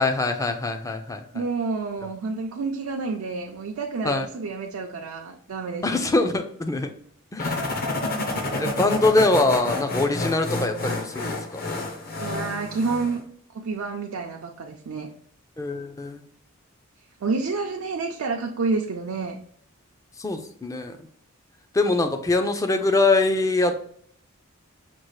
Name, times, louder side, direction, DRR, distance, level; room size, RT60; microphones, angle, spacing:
voice 1, 0.0-1.4 4.0-4.3 5.8-6.9 7.3-7.6 8.6-11.6 15.6-16.2 20.2-21.0 21.7-23.8, left 2 dB, 15° left, 6 dB, 0.4 m, -23 dB
voice 2, 1.3-6.1 12.2-13.2 13.5-15.1 17.2-19.4, right 4 dB, 80° right, 1 dB, 0.5 m, -29 dB
sound 1, 7.4-13.2, left 2 dB, 45° left, 0.7 m, -29 dB
6.0 x 2.4 x 3.1 m, 0.62 s
head